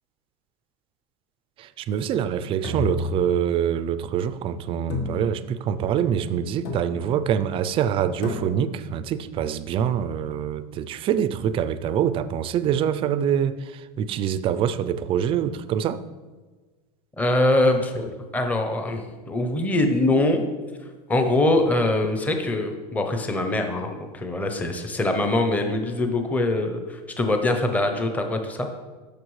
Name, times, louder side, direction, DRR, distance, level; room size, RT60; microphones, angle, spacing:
voice 1, 1.6-16.0, right 9 dB, 30° right, 14 dB, 0.3 m, -25 dB
sound 1, 2.6-3.8 4.9-5.7 6.6-7.3 8.2-8.9, left 2 dB, 75° left, 1.7 m, -32 dB
voice 2, 17.2-20.4 21.1-28.7, left 2 dB, 10° left, 5 dB, 0.6 m, -23 dB
13.0 x 5.2 x 3.2 m, 1.3 s
supercardioid pair, 145°, 20 cm